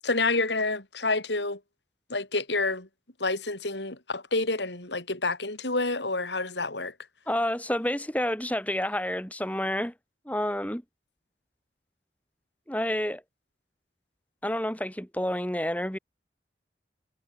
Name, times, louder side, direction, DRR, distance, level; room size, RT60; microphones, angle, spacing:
voice 1, 0.0-1.6 2.1-2.9 3.2-6.9, left 3 dB, 85° left, 5.2 m, -28 dB
voice 2, 7.3-9.9 10.3-10.8 12.7-13.2 14.4-16.0, left 1 dB, 10° left, 7.8 m, -29 dB
head